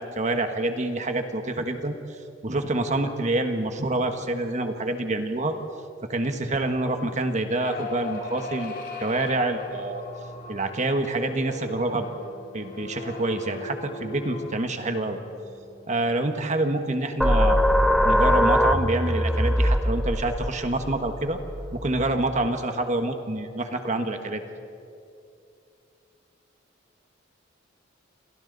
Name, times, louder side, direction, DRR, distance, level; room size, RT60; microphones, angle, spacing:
voice 1, 0.0-1.9 2.4-5.6 6.1-8.7 9.0-10.0 10.5-12.1 12.5-15.2 15.9-17.7 18.0-21.4 21.7-24.4, right 2 dB, 40° right, 6 dB, 1.5 m, -27 dB
sound 1, 7.6-16.3, left 1 dB, 45° left, 2.5 m, -39 dB
sound 2, 17.2-22.5, equal, ahead, 0.6 m, -22 dB
30.0 x 27.0 x 4.1 m, 2.5 s
head